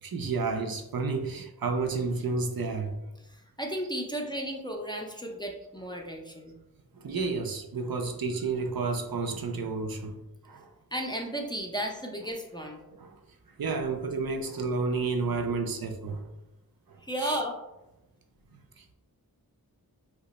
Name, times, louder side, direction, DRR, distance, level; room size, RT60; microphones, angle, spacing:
voice 1, 0.0-3.0 6.9-10.2 10.4-10.7 13.0-13.2 13.6-16.3 17.2-17.4 18.8-18.9, right 4 dB, 70° right, 4 dB, 0.5 m, -31 dB
voice 2, 3.2-6.6 10.9-12.8 17.0-17.6, right 1 dB, 10° left, 0 dB, 0.4 m, -34 dB
2.9 x 2.1 x 4.0 m, 0.96 s
wide cardioid pair, 40°, 37 cm